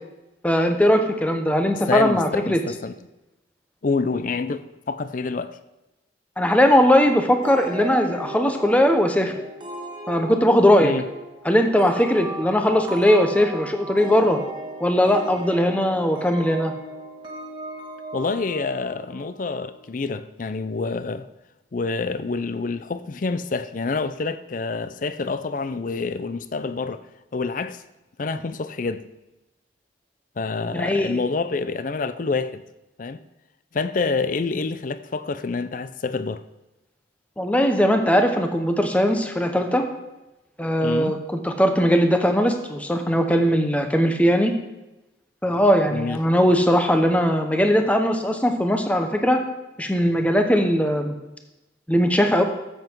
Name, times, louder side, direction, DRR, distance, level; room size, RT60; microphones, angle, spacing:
voice 1, 0.4-2.6 6.4-9.3 10.1-10.9 11.4-14.4 14.8-16.7 30.7-31.2 37.4-39.8 40.6-41.2 41.4-44.5 45.4-49.4 49.8-51.1 51.9-52.4, equal, 10° left, 0.9 m, -19 dB
voice 2, 1.7-2.9 3.8-5.6 10.8-11.1 18.1-21.2 21.7-27.0 27.3-27.8 28.2-29.0 30.4-32.6 33.0-33.2 33.7-36.4 40.8-41.2 45.9-46.2, left 4 dB, 45° left, 0.5 m, -27 dB
sound 1, 7.4-19.8, right 1 dB, 25° right, 1.5 m, -37 dB
12.5 x 7.9 x 4.6 m
head